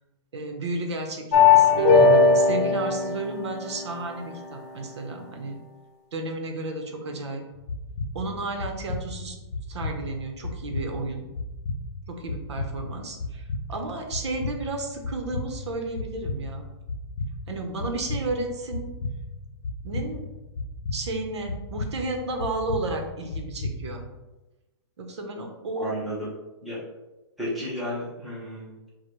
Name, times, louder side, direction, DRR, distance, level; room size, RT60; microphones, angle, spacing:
voice 1, 0.3-5.6 6.1-7.4 8.1-9.4 9.7-11.3 12.1-16.7 17.5-18.9 19.8-20.2 20.9-24.1 25.0-25.9, right 2 dB, 70° right, 3 dB, 1.0 m, -33 dB
sound 1, 1.3-4.3, left 4 dB, 35° left, 0.9 m, -18 dB
sound 2, 7.5-24.2, left 2 dB, 65° left, 0.6 m, -35 dB
voice 2, 25.7-26.3 26.6-26.8 27.4-28.9, equal, ahead, -9 dB, 0.8 m, -33 dB
4.7 x 2.3 x 4.5 m, 1.1 s
hypercardioid pair, 175°, 15 cm